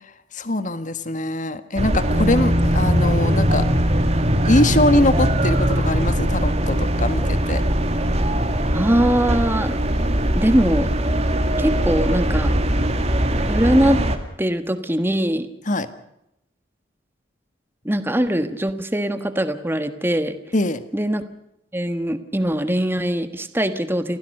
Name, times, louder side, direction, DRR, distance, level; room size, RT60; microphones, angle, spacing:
voice 1, 0.3-3.7 4.4-7.6 15.6-15.9 20.5-20.8, left 1 dB, 45° left, 12 dB, 1.6 m, -22 dB
sound 1, 1.8-14.2, right 1 dB, 35° right, 2.4 m, -21 dB
Bass guitar, 2.1-8.3, equal, 65° right, 4.0 m, -28 dB
voice 2, 8.7-9.8 10.3-10.9 11.6-12.6 13.5-14.0 14.4-15.5 17.8-20.3 20.9-21.2 21.7-24.2, equal, 10° right, 10 dB, 1.5 m, -21 dB
29.0 x 16.0 x 6.7 m, 0.83 s
head